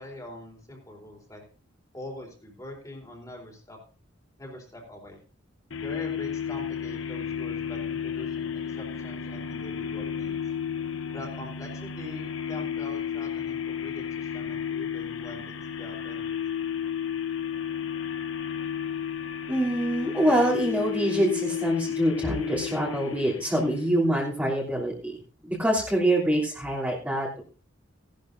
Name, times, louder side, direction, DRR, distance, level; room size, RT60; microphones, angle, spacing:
voice 1, 0.0-1.4 1.9-3.8 4.4-5.2 5.8-10.4 11.1-16.2, left 1 dB, 20° left, 1 dB, 3.8 m, -43 dB
sound 1, 5.7-24.0, left 8 dB, 85° left, 1.0 m, -32 dB
voice 2, 19.5-25.2 25.4-27.4, right 1 dB, 10° right, -6 dB, 3.2 m, -25 dB
18.0 x 11.5 x 2.7 m, 0.37 s
head